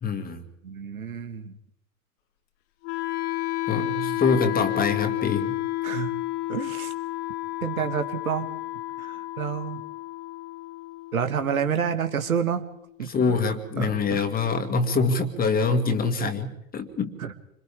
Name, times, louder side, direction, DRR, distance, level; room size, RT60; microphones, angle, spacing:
voice 1, 0.0-0.5 3.7-5.6 13.1-17.2, left 4 dB, 20° left, 7 dB, 2.2 m, -25 dB
voice 2, 0.6-1.5 3.8-4.2 5.8-6.1 6.5-6.9 7.6-8.5 9.0-9.8 11.1-12.7 13.0-13.4 13.8-14.2 17.2-17.3, right 7 dB, 70° right, 9 dB, 1.9 m, -29 dB
Wind instrument woodwind instrument, 2.8-12.8, left 18 dB, 40° left, 1.4 m, -31 dB
28.5 x 26.5 x 3.7 m, 0.79 s
figure-of-eight pair, 95°, 44 cm